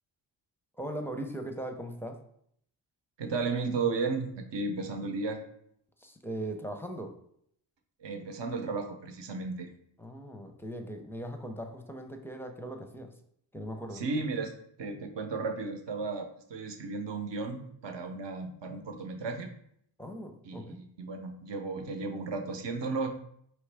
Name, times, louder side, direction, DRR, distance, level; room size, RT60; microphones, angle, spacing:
voice 1, 0.8-2.2 6.0-7.1 10.0-13.1 13.5-14.0 20.0-20.8, right 1 dB, 5° left, 5 dB, 0.5 m, -39 dB
voice 2, 3.2-5.4 8.0-9.7 13.9-14.5 14.8-19.5 20.4-23.1, right 4 dB, 65° right, 5 dB, 0.8 m, -34 dB
4.7 x 3.0 x 3.3 m, 0.69 s
cardioid pair, 65°, 46 cm